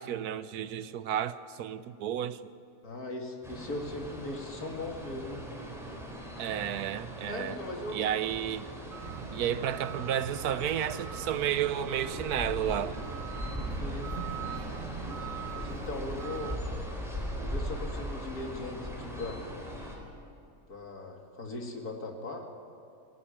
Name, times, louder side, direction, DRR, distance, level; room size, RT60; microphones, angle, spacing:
voice 1, 0.0-2.4 6.4-7.6 7.9-8.7 9.3-13.0, right 10 dB, 90° right, 1.3 m, -32 dB
voice 2, 2.8-5.4 7.3-8.0 8.6-8.7 13.8-14.2 15.5-16.6 17.4-19.4 20.7-22.5, left 2 dB, 85° left, 2.8 m, -39 dB
sound 1, 3.4-20.0, equal, ahead, 4.1 m, -39 dB
sound 2, 8.9-16.6, right 8 dB, 55° right, 1.0 m, -42 dB
21.5 x 15.5 x 8.9 m
omnidirectional pair, 1.6 m